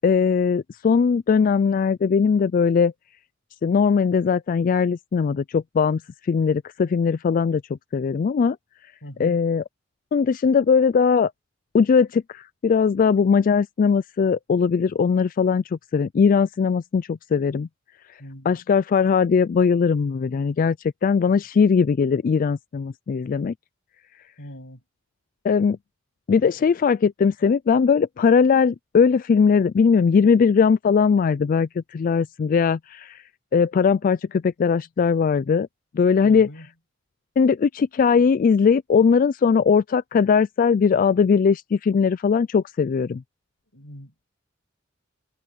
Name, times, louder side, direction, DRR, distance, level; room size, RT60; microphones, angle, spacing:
voice 1, 0.0-2.9 3.6-7.6 7.9-8.6 9.2-9.6 10.1-11.3 11.7-17.7 18.5-20.8 21.0-23.5 25.4-25.8 26.3-33.2 33.5-35.7 35.9-36.5 37.4-43.2, left 6 dB, 45° left, 0.3 m, -20 dB
voice 2, 9.0-9.4 18.2-18.6 24.4-24.8 36.2-36.7 43.7-44.3, equal, 80° left, 6.8 m, -42 dB
head